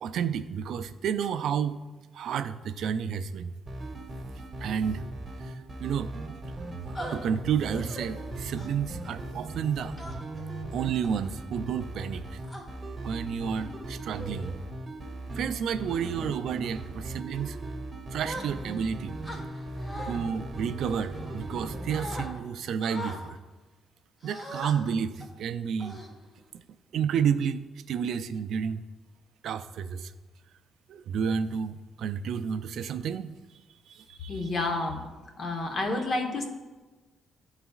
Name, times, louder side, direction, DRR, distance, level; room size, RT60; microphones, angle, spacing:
voice 1, 0.0-1.8 2.1-3.6 4.6-5.1 5.4-6.1 6.9-9.9 10.7-12.4 13.0-14.6 15.3-17.6 18.1-19.2 20.0-23.4 24.2-26.0 26.5-26.6 26.9-28.8 29.4-30.1 30.9-33.4 33.9-34.5, right 7 dB, 70° right, 11 dB, 0.3 m, -31 dB
sound 1, 3.7-22.3, right 2 dB, 25° right, 1.0 m, -38 dB
sound 2, 7.0-7.2 7.7-8.1 8.6-8.9 10.0-10.4 11.0-11.3 12.1-12.6 13.5-13.7 14.2-14.5 15.0-15.3 15.8-16.1 16.6-16.9 18.2-18.8 19.2-20.2 20.8-21.6 21.9-22.3 22.8-23.2 24.2-24.7 25.2-25.4 25.8-26.5, equal, 20° left, 1.2 m, -41 dB
voice 2, 34.3-35.0 35.4-36.4, left 2 dB, 50° left, 4 dB, 1.0 m, -29 dB
11.5 x 4.0 x 2.4 m, 1.2 s
cardioid pair, 90°, 0 cm